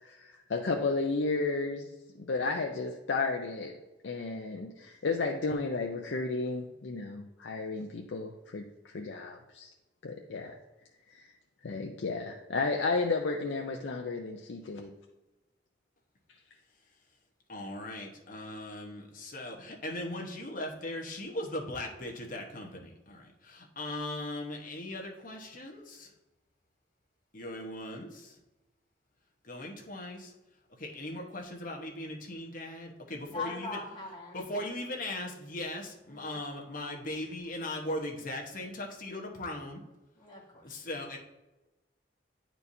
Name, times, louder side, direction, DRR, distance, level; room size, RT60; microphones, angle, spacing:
voice 1, 0.0-1.9 2.2-3.7 4.0-9.7 10.0-10.5 11.1-11.3 11.6-14.9, left 3 dB, 90° left, 1 dB, 0.6 m, -33 dB
voice 2, 17.5-26.1 27.3-28.3 29.4-30.3 30.8-33.8 34.3-39.8 40.6-41.2, left 1 dB, 50° left, 1 dB, 1.1 m, -39 dB
voice 3, 33.3-34.4 36.1-36.4 37.1-37.3 40.2-40.7, left 3 dB, 25° left, -4 dB, 1.9 m, -41 dB
9.9 x 4.5 x 2.7 m, 1.0 s
head